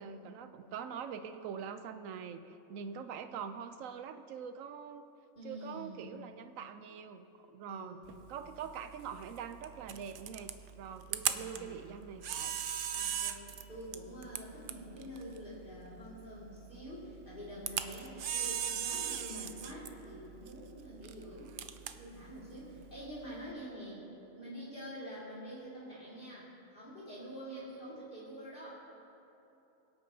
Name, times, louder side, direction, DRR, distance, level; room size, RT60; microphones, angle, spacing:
voice 1, 0.0-5.1 5.4-8.0 8.3-12.5 22.8-22.9, right 7 dB, 90° right, 9 dB, 1.0 m, -44 dB
voice 2, 5.4-6.1 7.7-8.0 11.3-11.8 12.9-21.6 21.9-24.0 24.4-28.8, equal, 40° left, -9 dB, 2.7 m, -47 dB
Camera, 8.0-23.5, right 9 dB, 65° right, 0.5 m, -40 dB
22.5 x 8.5 x 2.8 m, 2.9 s
omnidirectional pair, 1.3 m